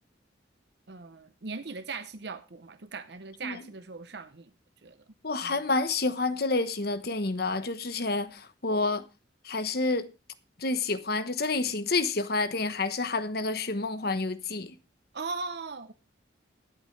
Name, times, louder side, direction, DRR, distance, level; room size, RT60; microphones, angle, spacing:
voice 1, 0.9-4.5 4.8-5.0 5.4-5.6 15.1-15.9, right 4 dB, 60° right, 0.8 m, -39 dB
voice 2, 5.2-9.1 9.4-10.1 10.6-14.7, left 3 dB, 55° left, 1.1 m, -29 dB
19.0 x 8.2 x 3.3 m
head